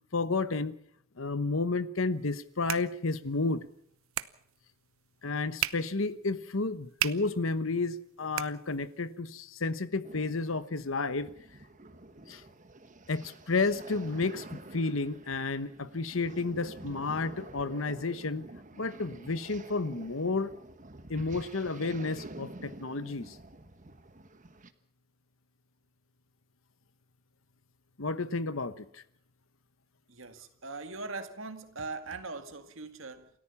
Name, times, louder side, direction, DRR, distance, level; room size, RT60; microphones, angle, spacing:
voice 1, 0.1-0.8 1.2-3.6 5.2-11.3 12.3-12.4 13.1-18.5 18.8-20.5 21.1-23.4 28.0-29.0, left 3 dB, 70° left, 1.1 m, -31 dB
sound 1, 2.1-9.2, right 12 dB, 85° right, 0.8 m, -40 dB
sound 2, 10.0-24.7, right 2 dB, 35° right, 1.2 m, -49 dB
voice 2, 30.1-33.3, right 3 dB, 70° right, 2.1 m, -41 dB
28.5 x 13.5 x 7.1 m
head